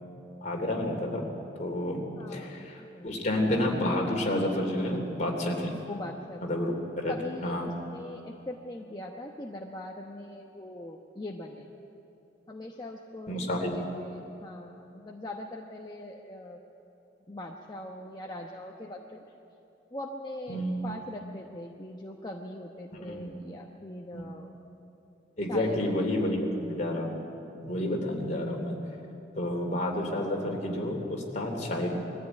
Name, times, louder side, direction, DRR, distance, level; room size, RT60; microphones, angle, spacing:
voice 1, 0.4-1.2 1.6-2.0 2.3-5.7 6.4-7.1 7.4-7.7 13.3-13.8 20.5-20.8 23.0-23.3 24.1-24.2 25.4-27.2 27.6-28.7 29.4-31.9, left 1 dB, 40° left, 1 dB, 3.1 m, -30 dB
voice 2, 2.2-3.3 5.9-6.6 7.1-11.7 12.5-13.5 13.7-16.6 17.3-19.3 19.9-24.5 25.5-26.3 27.0-27.2 29.1-29.3, left 1 dB, 25° left, 0 dB, 1.1 m, -41 dB
21.5 x 14.0 x 9.1 m, 2.8 s
head